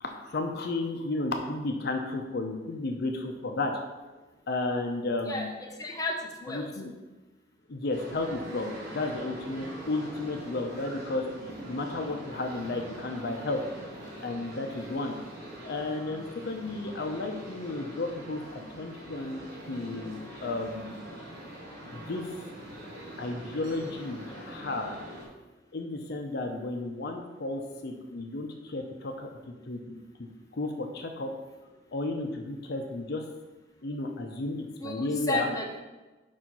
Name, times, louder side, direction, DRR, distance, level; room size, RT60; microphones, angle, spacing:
voice 1, 0.0-3.7 4.5-5.5 6.5-6.9 7.7-11.2 11.7-13.6 14.2-15.2 15.6-19.4 19.7-21.0 21.9-22.3 23.2-25.0 25.7-29.3 29.7-31.3 31.9-33.2 33.8-35.5, left 2 dB, 60° left, 3 dB, 0.7 m, -33 dB
voice 2, 5.2-6.2 6.4-6.7 14.8-14.9 34.8-35.8, left 2 dB, 20° left, 0 dB, 0.9 m, -33 dB
sound 1, 7.9-25.2, right 1 dB, 55° right, 2.2 m, -43 dB
5.3 x 4.3 x 6.0 m, 1.2 s
head